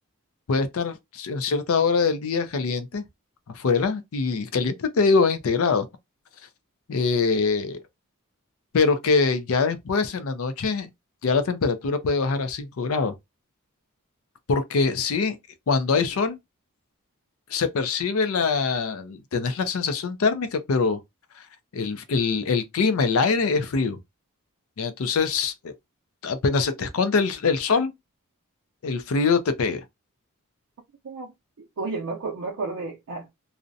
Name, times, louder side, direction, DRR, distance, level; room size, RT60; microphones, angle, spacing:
voice 1, 0.5-3.0 3.5-5.9 6.9-7.8 8.7-10.9 11.2-13.1 14.5-15.4 15.7-16.4 17.5-21.0 21.7-24.0 24.8-25.7 26.2-27.9 28.8-29.8, left 4 dB, 70° left, 0.4 m, -23 dB
voice 2, 31.0-33.3, right 3 dB, 70° right, 0.5 m, -32 dB
2.5 x 2.1 x 2.5 m
head